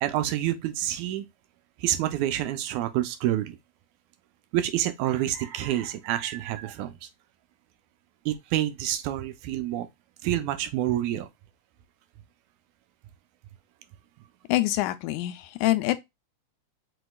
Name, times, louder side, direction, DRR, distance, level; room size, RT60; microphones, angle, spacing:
voice 1, 0.0-1.3 1.8-3.6 4.5-6.9 8.3-9.9 10.2-11.3, right 13 dB, 85° right, 2.1 m, -28 dB
voice 2, 14.5-16.0, left 17 dB, 80° left, 1.9 m, -25 dB
6.0 x 2.9 x 2.2 m
omnidirectional pair, 3.5 m